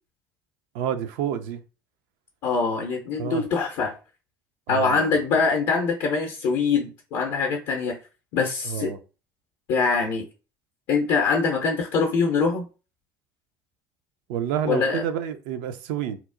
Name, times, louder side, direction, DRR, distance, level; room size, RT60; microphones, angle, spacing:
voice 1, 0.7-1.6 3.1-3.4 4.7-5.2 8.6-9.0 14.3-16.2, right 9 dB, 60° right, 0.4 m, -29 dB
voice 2, 2.4-3.9 4.7-8.0 8.3-8.9 9.7-10.2 10.9-12.6 14.6-15.0, left 4 dB, 55° left, 0.5 m, -23 dB
2.7 x 2.0 x 2.4 m
figure-of-eight pair, 60°, 12 cm